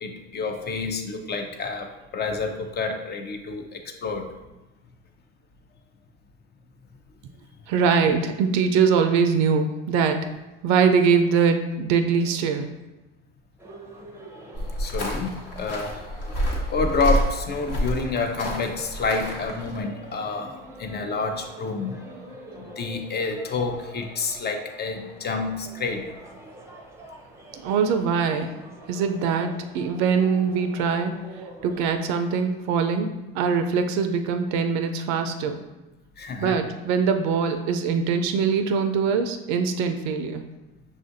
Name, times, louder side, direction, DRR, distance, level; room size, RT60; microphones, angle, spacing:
voice 1, 0.0-4.3 14.8-22.1 22.6-26.0 36.2-36.6, left 4 dB, 35° left, 5 dB, 0.6 m, -29 dB
voice 2, 7.7-10.2 10.6-12.7 27.5-28.6 28.9-31.1 31.6-33.1 33.3-35.6 36.4-40.4, right 6 dB, 65° right, 7 dB, 0.4 m, -22 dB
sound 1, 13.6-32.1, right 2 dB, 10° right, 0.6 m, -45 dB
sound 2, 14.5-19.8, equal, 55° left, 1.1 m, -28 dB
6.0 x 2.4 x 2.5 m, 1.0 s
hypercardioid pair, 75°, 30 cm